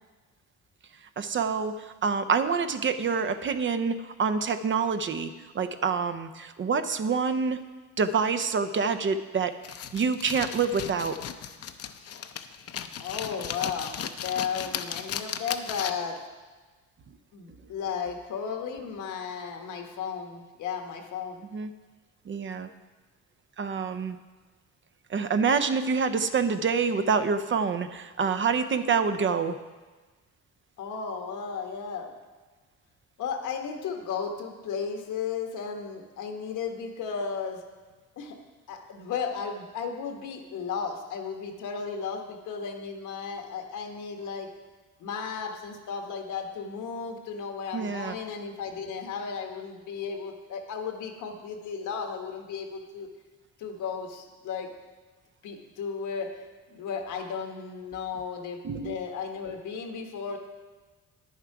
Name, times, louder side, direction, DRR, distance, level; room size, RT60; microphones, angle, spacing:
voice 1, 1.2-7.6 8.0-9.5 9.9-11.2 21.5-21.7 22.3-22.7 23.6-24.2 25.1-29.6 47.7-48.2 58.6-59.0, right 5 dB, 40° right, 10 dB, 0.6 m, -27 dB
sound 1, 9.6-16.2, left 8 dB, 55° left, 0.6 m, -36 dB
voice 2, 13.0-16.2 17.3-21.4 30.8-32.1 33.2-37.6 38.2-38.4 38.7-44.5 45.0-53.1 53.6-54.7 55.4-56.3 56.7-60.4, left 6 dB, 80° left, 4 dB, 1.3 m, -34 dB
10.0 x 7.3 x 4.7 m, 1.3 s
cardioid pair, 90°, 30 cm